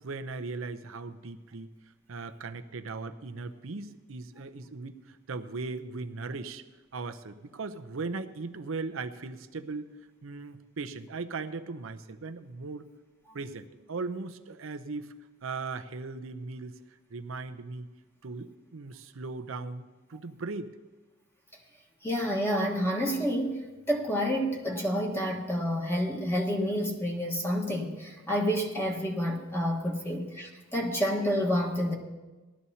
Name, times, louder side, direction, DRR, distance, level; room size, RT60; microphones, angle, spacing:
voice 1, 0.0-1.7 2.1-6.6 6.9-9.9 10.2-12.9 13.3-15.1 15.4-16.8 17.1-17.9 18.2-20.7, right 3 dB, 70° right, 9 dB, 0.7 m, -38 dB
voice 2, 22.0-31.9, equal, 10° left, -1 dB, 1.4 m, -29 dB
18.5 x 12.5 x 2.8 m, 1.2 s
head